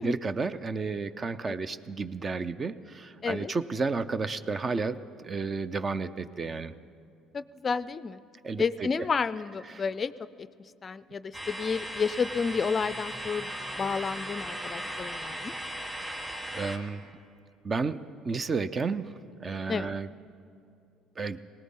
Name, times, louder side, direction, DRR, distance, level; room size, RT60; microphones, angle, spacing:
voice 1, 0.0-5.0 5.2-6.7 8.4-9.1 9.7-9.8 15.9-16.3 16.5-17.1 17.6-19.1 19.4-20.1 21.2-21.4, right 4 dB, 35° right, 14 dB, 0.5 m, -32 dB
voice 2, 3.2-3.5 7.3-8.2 8.6-10.1 10.4-10.5 10.8-13.5 13.8-15.5 19.7-19.9, left 5 dB, 35° left, 16 dB, 0.4 m, -31 dB
sound 1, 11.3-16.8, equal, 10° right, 2.2 m, -37 dB
20.5 x 18.0 x 3.7 m, 2.5 s
hypercardioid pair, 65°, 0 cm